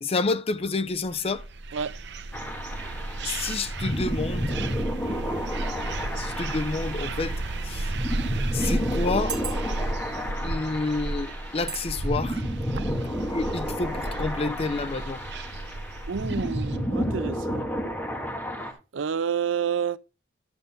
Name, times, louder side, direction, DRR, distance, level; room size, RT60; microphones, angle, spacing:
voice 1, 0.0-1.4 3.2-4.7 6.2-7.4 7.6-7.9 8.5-9.4 10.4-12.4 13.3-15.2, left 3 dB, 30° left, 0.5 m, -29 dB
sound 1, 1.1-16.8, right 2 dB, 65° right, 0.8 m, -33 dB
sound 2, 2.3-18.7, equal, 10° left, 1.5 m, -32 dB
sound 3, 9.3-9.9 10.6-10.8 11.7-11.9 12.3-12.5, right 6 dB, 20° right, 1.3 m, -35 dB
voice 2, 16.1-17.7 18.9-20.0, right 7 dB, 90° right, 0.5 m, -29 dB
11.5 x 6.6 x 3.5 m
head